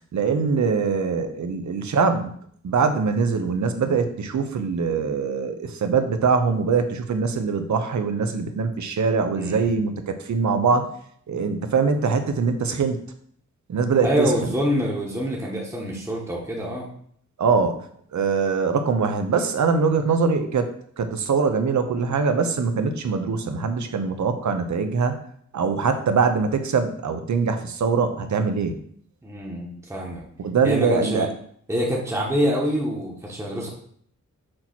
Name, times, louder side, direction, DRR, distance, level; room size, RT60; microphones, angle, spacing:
voice 1, 0.1-2.3 2.6-10.9 11.3-13.0 13.7-14.3 17.4-17.8 18.1-25.2 25.5-28.8 30.4-31.3, right 5 dB, 65° right, 8 dB, 0.8 m, -23 dB
voice 2, 9.3-9.7 14.0-16.9 29.2-30.2 30.6-31.3 31.7-33.7, equal, 10° right, -3 dB, 1.0 m, -26 dB
6.5 x 3.0 x 5.9 m, 0.62 s
wide cardioid pair, 180°, 31 cm